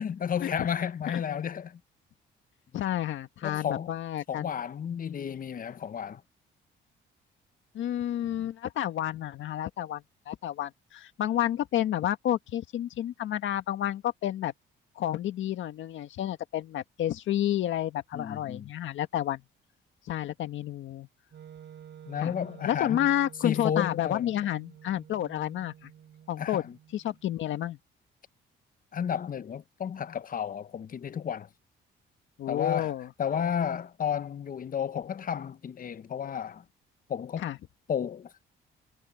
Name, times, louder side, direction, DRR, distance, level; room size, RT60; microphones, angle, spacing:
voice 1, 0.0-1.8 3.4-3.9 4.3-6.2 18.1-18.7 22.1-23.1 23.4-24.3 26.4-26.7 28.9-31.5 32.5-32.9 33.2-36.6 37.1-37.5 37.9-38.3, left 8 dB, 45° left, 0.8 m, -32 dB
voice 2, 2.7-4.6 7.7-14.5 15.0-19.4 20.1-21.1 22.2-22.3 22.6-25.9 26.3-26.6 26.9-27.8 32.4-33.1 37.4-37.6, left 12 dB, 75° left, 1.8 m, -30 dB
Wind instrument woodwind instrument, 21.3-27.4, right 9 dB, 60° right, 6.6 m, -51 dB
cardioid pair, 90°, 20 cm